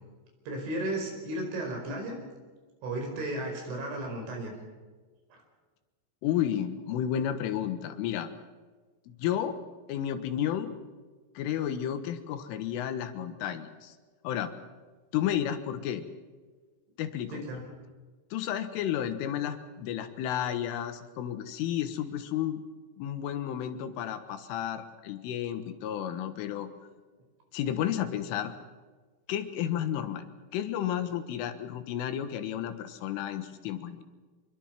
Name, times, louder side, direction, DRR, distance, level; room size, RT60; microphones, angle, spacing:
voice 1, 0.5-2.2 2.8-4.5 5.3-5.4 17.3-17.6, right 1 dB, 70° right, 3 dB, 7.1 m, -34 dB
voice 2, 6.2-8.3 9.2-9.6 9.9-10.8 11.4-14.0 14.2-14.5 15.1-16.1 17.0-17.4 18.3-22.6 23.0-26.7 27.5-28.5 29.3-30.2 30.5-34.0, left 10 dB, 85° left, 9 dB, 4.0 m, -32 dB
25.5 x 21.5 x 6.0 m, 1.4 s
omnidirectional pair, 5.6 m